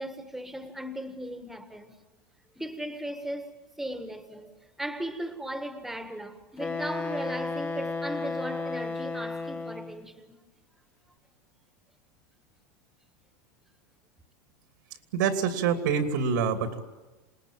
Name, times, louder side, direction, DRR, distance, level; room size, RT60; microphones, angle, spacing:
voice 1, 0.0-2.0 2.5-10.4, right 1 dB, 5° right, 1.5 m, -37 dB
Wind instrument woodwind instrument, 6.6-10.1, left 3 dB, 15° left, 1.2 m, -33 dB
voice 2, 15.1-16.8, right 6 dB, 75° right, 2.8 m, -26 dB
27.5 x 19.5 x 8.8 m
supercardioid pair, 150°, 10 cm